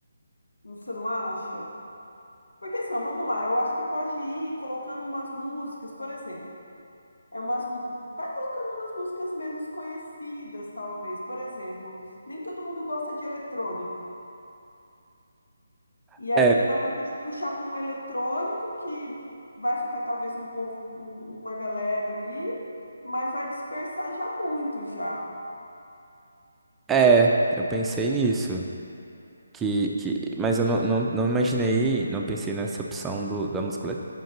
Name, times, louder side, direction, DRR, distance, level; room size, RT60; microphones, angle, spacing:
voice 1, 0.6-1.6 2.6-6.5 7.3-11.9 12.3-13.9 16.2-19.2 19.6-22.6 23.0-25.2, left 1 dB, 80° left, -3 dB, 1.6 m, -31 dB
voice 2, 26.9-27.3 27.6-28.6 29.5-34.0, right 4 dB, 10° right, 0 dB, 0.5 m, -24 dB
7.6 x 5.2 x 5.3 m, 2.7 s
figure-of-eight pair, 150°, 0 cm